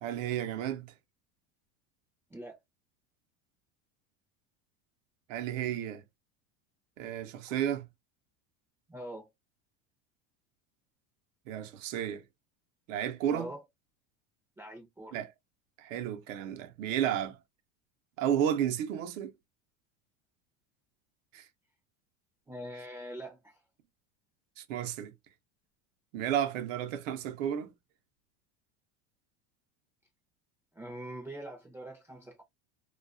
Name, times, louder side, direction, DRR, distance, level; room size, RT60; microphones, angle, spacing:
voice 1, 0.0-0.9 5.3-6.0 7.0-7.9 11.5-12.2 12.9-13.5 15.1-15.3 15.8-17.4 18.2-19.3 21.3-21.4 24.6-25.1 26.1-27.7, right 10 dB, 90° right, 0.7 m, -32 dB
voice 2, 8.9-9.3 13.3-13.6 14.6-15.2 22.5-23.6 30.7-32.4, right 1 dB, 10° right, 0.3 m, -43 dB
2.3 x 2.2 x 2.3 m
supercardioid pair, 135°, 38 cm